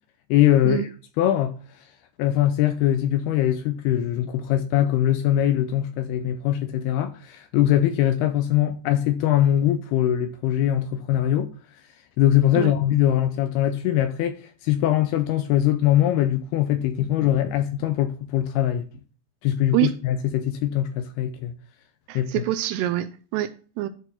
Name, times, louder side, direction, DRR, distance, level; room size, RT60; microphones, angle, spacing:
voice 1, 0.3-0.9 1.2-1.6 2.2-11.5 12.2-18.9 19.4-21.5 22.2-22.3, left 12 dB, 80° left, 2.3 m, -22 dB
voice 2, 22.1-23.9, right 14 dB, 85° right, 2.5 m, -25 dB
12.0 x 4.2 x 4.2 m
omnidirectional pair, 5.0 m